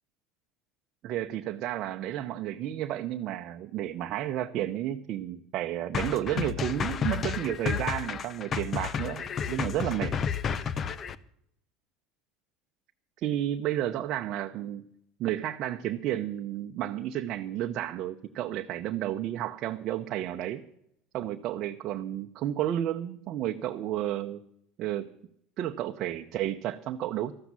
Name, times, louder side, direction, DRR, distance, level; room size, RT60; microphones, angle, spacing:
voice 1, 1.0-10.2 13.2-14.8 15.2-20.6 21.1-24.4 24.8-25.1 25.6-27.3, right 12 dB, 55° right, 5 dB, 0.7 m, -32 dB
sound 1, 5.9-11.2, left 7 dB, 35° left, 0.7 m, -31 dB
13.5 x 7.3 x 9.6 m, 0.74 s
supercardioid pair, 110°, 0 cm